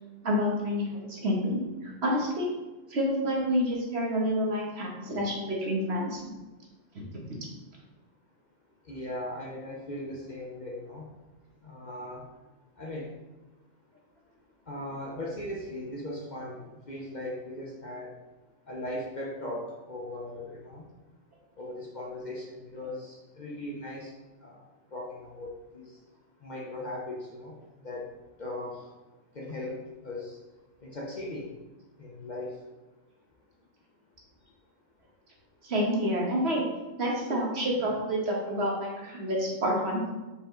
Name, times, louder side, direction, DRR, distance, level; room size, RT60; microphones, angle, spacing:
voice 1, 0.2-2.5 2.9-6.2 6.9-7.2 35.6-36.7 37.0-40.1, equal, 55° right, -2 dB, 1.5 m, -28 dB
voice 2, 8.9-11.0 11.6-12.2 12.8-13.1 14.7-18.1 18.7-20.8 21.6-24.1 24.4-24.7 24.9-26.0 26.4-27.6 27.8-28.1 28.4-28.9 29.3-30.4 30.8-31.5 32.0-32.5, left 1 dB, 40° left, -2 dB, 0.8 m, -38 dB
5.3 x 4.9 x 3.7 m, 1.1 s
omnidirectional pair, 1.3 m